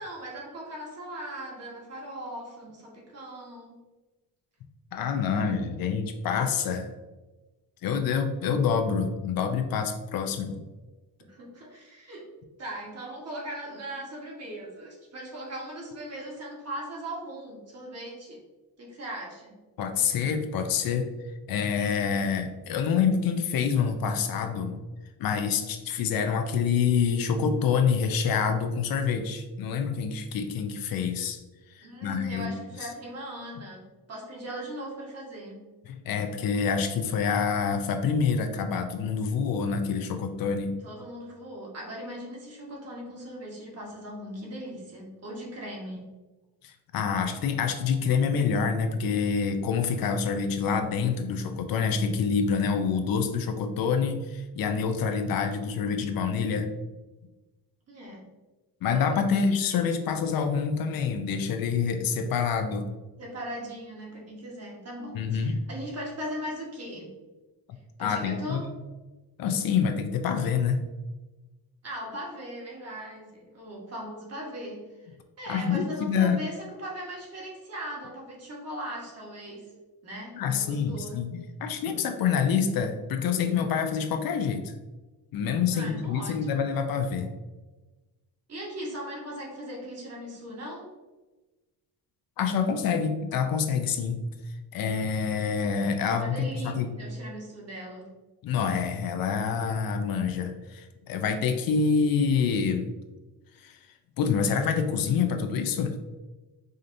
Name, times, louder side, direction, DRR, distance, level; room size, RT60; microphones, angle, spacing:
voice 1, 0.0-3.8 11.3-12.3 12.6-18.4 18.8-19.6 31.8-33.8 34.1-35.6 40.8-46.1 57.9-58.2 58.9-59.2 63.2-67.1 68.0-68.7 71.8-79.7 80.0-81.2 85.7-86.6 88.5-90.9 96.1-98.1, right 1 dB, 40° right, -3 dB, 1.2 m, -39 dB
voice 2, 4.9-6.9 7.8-10.6 19.8-21.1 21.5-24.8 25.2-31.4 31.7-32.5 32.8-32.9 35.9-40.8 46.6-56.7 58.8-62.8 65.1-65.6 68.0-68.7 69.4-70.8 75.5-76.4 80.4-84.7 85.3-87.3 92.4-94.2 94.7-96.9 98.4-102.9 103.6-103.8 104.2-105.9, left 6 dB, 65° left, 6 dB, 0.5 m, -27 dB
4.9 x 2.7 x 2.6 m, 1.1 s
cardioid pair, 120°, 38 cm